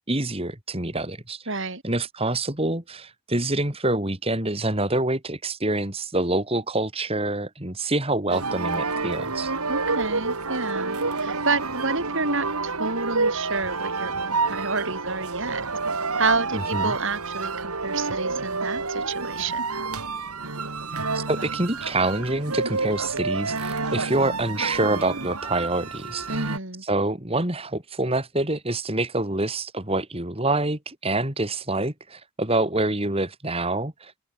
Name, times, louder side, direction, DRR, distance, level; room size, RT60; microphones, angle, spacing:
voice 1, 0.0-1.4 1.8-9.5 16.5-16.9 21.1-26.4 26.8-34.1, right 2 dB, 25° right, 2.8 m, -26 dB
voice 2, 1.5-1.8 9.7-15.7 16.2-19.6 26.3-26.8, right 3 dB, 55° right, 3.8 m, -29 dB
sound 1, 8.3-26.6, right 3 dB, 85° right, 4.0 m, -29 dB
open air
head